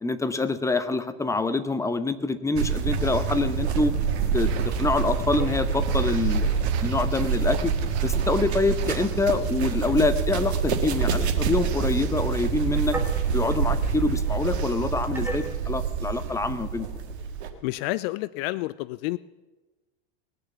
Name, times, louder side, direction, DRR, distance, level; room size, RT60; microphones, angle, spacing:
voice 1, 0.0-3.9 4.3-4.5 4.8-7.7 8.0-13.0 13.3-16.9, left 3 dB, 10° left, 11 dB, 0.9 m, -26 dB
sound 1, 2.5-17.5, right 6 dB, 85° right, 1.7 m, -26 dB
sound 2, 4.3-9.5, right 7 dB, 50° right, 1.5 m, -41 dB
sound 3, 5.3-17.6, right 1 dB, 5° right, 2.0 m, -44 dB
voice 2, 17.6-19.2, left 19 dB, 65° left, 18 dB, 0.5 m, -29 dB
20.0 x 6.7 x 7.1 m, 1.2 s
hypercardioid pair, 100°, 32 cm